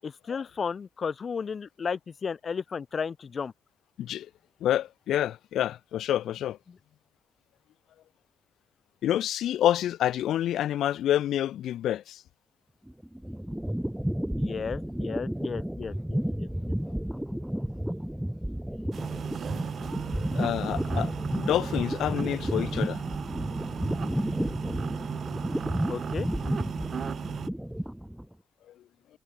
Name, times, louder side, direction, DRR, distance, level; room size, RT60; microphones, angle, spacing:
voice 1, 0.0-3.5 14.4-16.8 25.9-26.3, left 6 dB, 50° left, 6.8 m, -34 dB
voice 2, 4.6-6.6 9.0-12.2 20.3-21.1 21.4-23.0, left 12 dB, 85° left, 3.3 m, -27 dB
sound 1, 12.9-28.3, equal, 5° right, 3.4 m, -32 dB
sound 2, 18.9-27.5, right 7 dB, 60° right, 1.6 m, -36 dB
cardioid pair, 70°, 0 cm